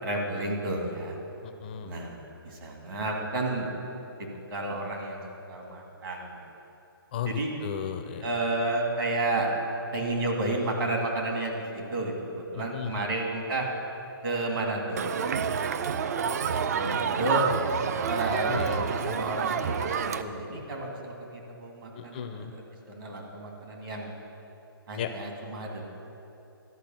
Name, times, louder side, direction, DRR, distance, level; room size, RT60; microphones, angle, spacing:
voice 1, 0.0-1.2 1.8-3.7 4.5-5.2 5.5-6.3 7.2-7.5 8.2-9.5 9.9-13.7 14.2-15.2 15.8-15.9 16.7-17.5 18.1-19.9 20.2-24.1 24.9-25.9, right 2 dB, 65° right, 0 dB, 2.5 m, -31 dB
voice 2, 1.4-1.9 7.1-8.2 12.6-13.1 18.5-18.9 22.0-22.5 25.0-25.1, left 9 dB, 25° left, 7 dB, 0.4 m, -35 dB
Crowd, 15.0-20.2, right 6 dB, 45° right, 0.4 m, -28 dB
12.0 x 5.5 x 7.3 m, 2.8 s
hypercardioid pair, 160°, 12 cm